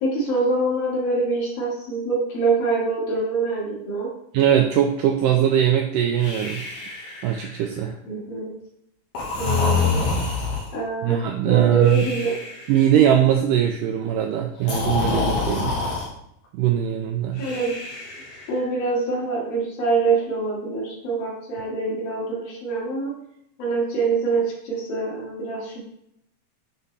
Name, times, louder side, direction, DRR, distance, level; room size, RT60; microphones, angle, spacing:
voice 1, 0.0-4.1 8.0-8.5 9.4-10.0 10.7-12.4 17.4-17.7 18.5-23.1 23.6-25.9, right 3 dB, 70° left, -5 dB, 3.9 m, -25 dB
voice 2, 4.3-6.6 7.2-8.0 11.0-12.1 12.7-15.8 16.5-17.5, right 10 dB, 85° right, 3 dB, 1.9 m, -20 dB
Breathing, 6.2-7.7 9.1-10.8 11.8-12.8 14.6-16.1 17.4-18.6, left 4 dB, 90° left, 3.7 m, -26 dB
9.5 x 4.1 x 3.4 m, 0.77 s
omnidirectional pair, 4.3 m